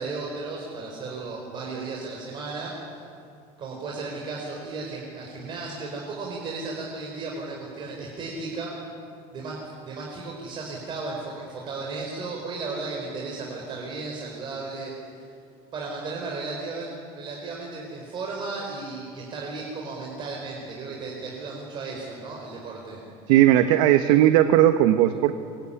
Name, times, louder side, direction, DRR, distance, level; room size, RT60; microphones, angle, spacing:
voice 1, 0.0-3.0 3.6-8.8 9.3-9.5 9.8-15.1 15.7-23.0, right 3 dB, 30° right, -2 dB, 4.5 m, -35 dB
voice 2, 23.3-25.3, right 12 dB, 70° right, 8 dB, 1.2 m, -17 dB
25.0 x 23.0 x 10.0 m, 2.5 s
cardioid pair, 175°, 17 cm